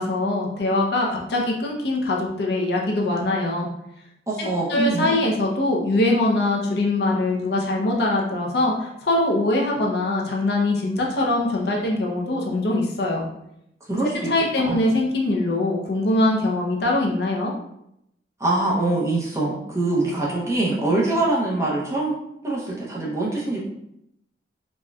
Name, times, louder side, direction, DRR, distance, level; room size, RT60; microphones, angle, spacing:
voice 1, 0.0-3.7 4.4-13.3 14.3-17.5, left 2 dB, 65° left, -1 dB, 0.6 m, -22 dB
voice 2, 4.3-5.1 13.9-14.3 14.6-14.8 18.4-22.2 22.4-23.6, right 2 dB, 15° right, -5 dB, 0.6 m, -23 dB
4.1 x 2.2 x 2.3 m, 0.79 s
head